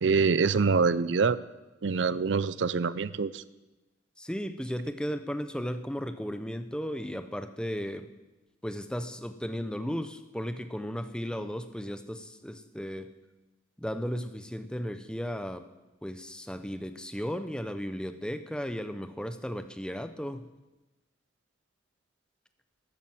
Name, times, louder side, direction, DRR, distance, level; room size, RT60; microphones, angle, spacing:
voice 1, 0.0-1.4 1.8-3.4, right 5 dB, 70° right, 17 dB, 0.5 m, -25 dB
voice 2, 4.2-8.1 8.6-13.1 13.8-15.7 16.0-20.5, equal, 5° left, 10 dB, 0.7 m, -35 dB
13.0 x 12.5 x 7.7 m, 1.1 s
head